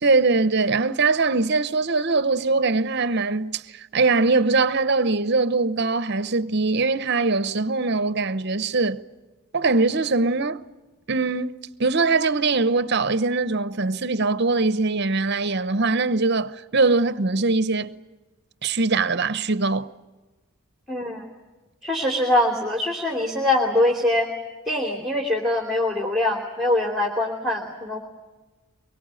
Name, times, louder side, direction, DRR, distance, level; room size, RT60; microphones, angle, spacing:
voice 1, 0.0-9.0 9.5-10.6 11.1-17.9 18.6-19.9, right 3 dB, 50° right, 0.9 m, -22 dB
voice 2, 20.9-21.2 21.8-24.3 24.6-28.1, left 1 dB, ahead, 3.0 m, -23 dB
24.0 x 23.0 x 9.0 m
head